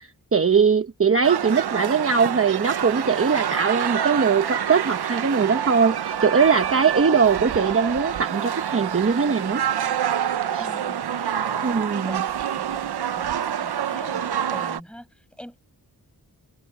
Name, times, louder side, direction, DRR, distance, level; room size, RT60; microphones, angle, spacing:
voice 1, 0.0-9.6 10.5-10.7 11.6-12.2, right 5 dB, 35° right, 1.1 m, -21 dB
sound 1, 1.2-14.8, right 9 dB, 90° right, 0.9 m, -27 dB
voice 2, 10.6-15.6, equal, 5° left, 7.2 m, -43 dB
wide cardioid pair, 105°, 38 cm